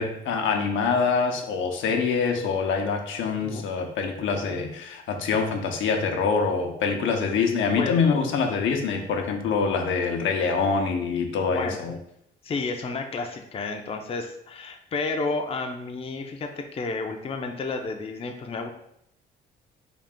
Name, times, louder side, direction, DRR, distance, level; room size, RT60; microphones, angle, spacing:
voice 1, 0.0-11.9, left 5 dB, 75° left, 3 dB, 0.6 m, -25 dB
voice 2, 11.5-11.9 12.4-18.7, left 3 dB, 30° left, 4 dB, 0.5 m, -31 dB
3.8 x 2.4 x 3.5 m, 0.74 s
cardioid pair, 90°, 20 cm